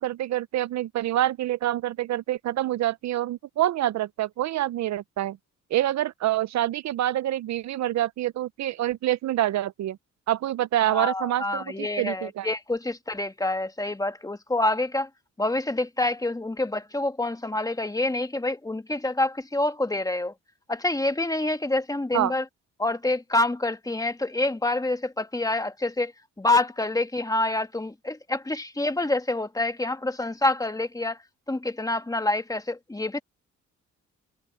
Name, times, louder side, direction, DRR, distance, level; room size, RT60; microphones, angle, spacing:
voice 1, 0.0-5.4 5.7-10.0 10.3-12.5 22.1-22.3, right 13 dB, 65° right, 0.5 m, -26 dB
voice 2, 10.9-15.1 15.4-20.3 20.7-22.4 22.8-26.1 26.4-31.2 31.5-33.2, left 2 dB, 10° left, 1.5 m, -27 dB
cardioid pair, 100°, 30 cm